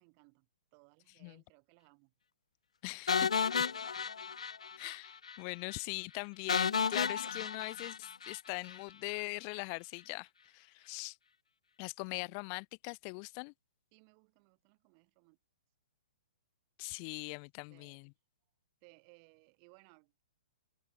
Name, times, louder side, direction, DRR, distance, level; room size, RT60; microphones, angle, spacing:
voice 1, 0.0-2.1 3.2-4.1 12.1-12.3 13.9-15.4 17.2-17.4 17.7-18.0 18.8-20.2, right 40 dB or more, 35° right, 6.1 m, -64 dB
voice 2, 2.8-3.3 4.8-11.2 11.8-13.5 16.8-18.1, left 40 dB or more, 35° left, 1.1 m, -41 dB
sound 1, 3.1-5.0 5.2-5.4 5.7-5.8 6.5-8.8, left 6 dB, 65° left, 0.6 m, -33 dB
open air
figure-of-eight pair, 115°, 4 cm